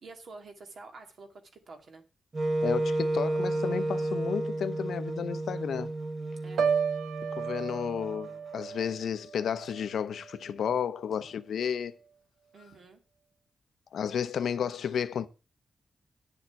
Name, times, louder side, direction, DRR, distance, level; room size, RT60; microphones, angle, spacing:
voice 1, 0.0-2.0 6.4-6.6 12.5-13.0, right 3 dB, 55° right, 2.2 m, -48 dB
Wind instrument woodwind instrument, 2.3-8.4, right 2 dB, 30° right, 1.0 m, -32 dB
voice 2, 2.6-5.9 7.4-11.9 13.9-15.3, left 8 dB, 80° left, 0.8 m, -32 dB
Piano, 6.6-10.5 10.9-11.3, right 6 dB, 80° right, 0.9 m, -33 dB
11.0 x 6.9 x 5.9 m
wide cardioid pair, 170°, 0 cm